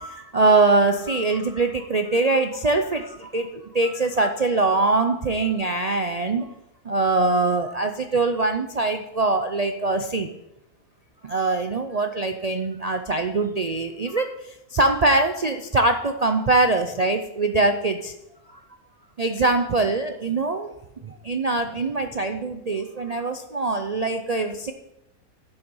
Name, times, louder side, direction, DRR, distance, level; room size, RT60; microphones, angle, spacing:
voice 1, 0.0-6.5 6.8-10.3 11.2-18.1 18.5-18.6 19.2-20.7 21.0-24.7, right 3 dB, 65° right, 6 dB, 0.3 m, -23 dB
11.5 x 7.1 x 5.4 m, 0.85 s
omnidirectional pair, 1.6 m